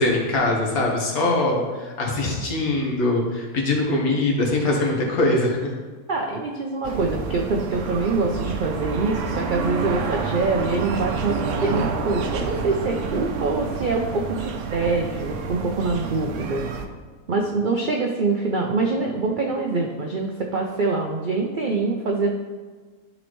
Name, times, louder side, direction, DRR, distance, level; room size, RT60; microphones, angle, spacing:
voice 1, 0.0-5.7, left 2 dB, 65° left, -1 dB, 1.7 m, -22 dB
voice 2, 3.9-4.2 6.1-16.6 17.3-22.3, right 3 dB, 80° right, 1 dB, 0.4 m, -25 dB
sound 1, 6.8-16.9, right 5 dB, 65° right, 0.8 m, -29 dB
11.0 x 4.0 x 3.1 m, 1.4 s
omnidirectional pair, 1.7 m